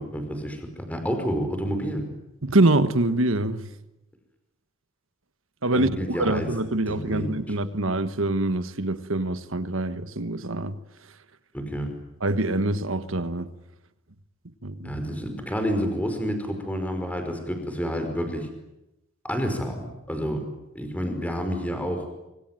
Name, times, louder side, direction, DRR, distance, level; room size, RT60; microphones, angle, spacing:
voice 1, 0.0-2.0 5.7-6.5 6.9-7.3 11.5-11.9 14.8-18.5 19.2-20.4 20.8-22.1, equal, 5° left, 5.3 m, -29 dB
voice 2, 2.4-3.7 5.6-10.8 12.2-13.5 14.6-14.9, right 2 dB, 65° right, 1.5 m, -25 dB
25.5 x 25.5 x 9.1 m
head